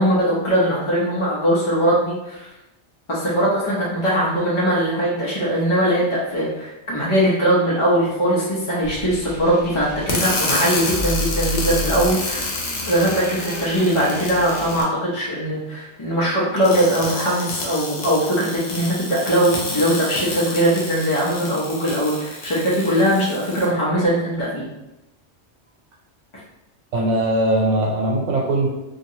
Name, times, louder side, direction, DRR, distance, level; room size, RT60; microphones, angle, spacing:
voice 1, 0.0-2.5 3.1-12.5 12.9-24.7, right 1 dB, 35° left, -7 dB, 0.6 m, -20 dB
sound 1, 8.8-14.8, left 1 dB, 10° right, 0.6 m, -31 dB
sound 2, 10.1-14.8 16.6-23.7, left 2 dB, 70° left, 1.0 m, -29 dB
voice 2, 26.9-28.7, right 1 dB, 85° right, -1 dB, 0.9 m, -20 dB
2.9 x 2.5 x 2.7 m, 0.96 s
omnidirectional pair, 1.2 m